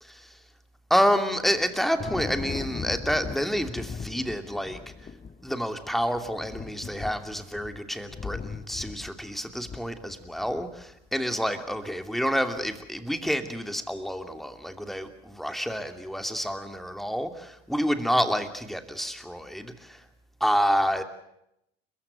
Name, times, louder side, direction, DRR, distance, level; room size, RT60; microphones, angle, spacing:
voice 1, 0.0-0.4 0.9-4.8 5.4-20.0 20.4-21.0, equal, ahead, 7 dB, 2.7 m, -28 dB
Thunder, 1.4-10.8, left 5 dB, 20° left, 2.2 m, -39 dB
29.5 x 15.0 x 9.4 m, 0.82 s
figure-of-eight pair, 70°, 31 cm